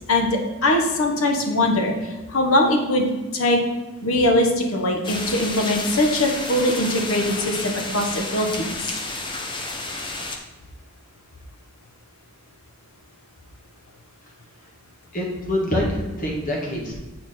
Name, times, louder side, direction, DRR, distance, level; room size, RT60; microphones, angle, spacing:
voice 1, 0.0-3.1 3.3-3.6 4.0-8.6, left 1 dB, 75° left, 3 dB, 1.2 m, -21 dB
sound 1, 5.0-10.4, left 2 dB, 20° left, 0.7 m, -31 dB
voice 2, 15.1-16.9, left 1 dB, 35° left, -2 dB, 1.7 m, -25 dB
8.7 x 4.5 x 4.2 m, 1.1 s
head